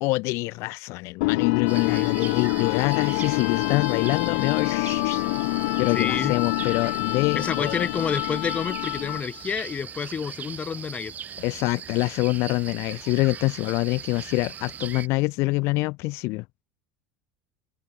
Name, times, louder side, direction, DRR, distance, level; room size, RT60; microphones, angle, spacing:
voice 1, 0.0-7.9 11.4-16.4, left 23 dB, 60° left, 1.6 m, -26 dB
sound 1, 1.2-9.4, left 26 dB, 80° left, 3.9 m, -26 dB
sound 2, 1.7-15.1, right 8 dB, 30° right, 6.8 m, -39 dB
voice 2, 1.8-2.1 5.9-6.4 7.4-11.1, left 6 dB, 25° left, 3.5 m, -29 dB
supercardioid pair, 140°, 5 cm